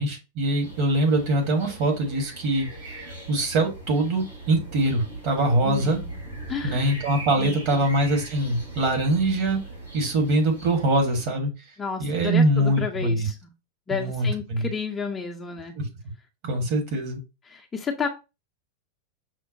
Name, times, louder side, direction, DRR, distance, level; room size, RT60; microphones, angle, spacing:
voice 1, 0.0-6.0 6.6-9.6 9.9-11.5 12.0-13.3 13.9-14.7 15.8-15.9 16.4-17.2, right 1 dB, 45° right, 3 dB, 1.3 m, -23 dB
sound 1, 0.6-11.2, right 2 dB, 85° right, 2.2 m, -40 dB
voice 2, 5.6-6.1 6.5-6.9 7.4-7.9 11.8-13.5 13.9-15.7 17.5-18.1, left 5 dB, 15° left, 4 dB, 0.5 m, -31 dB
5.7 x 2.1 x 2.7 m, 0.27 s
figure-of-eight pair, 90°, 0 cm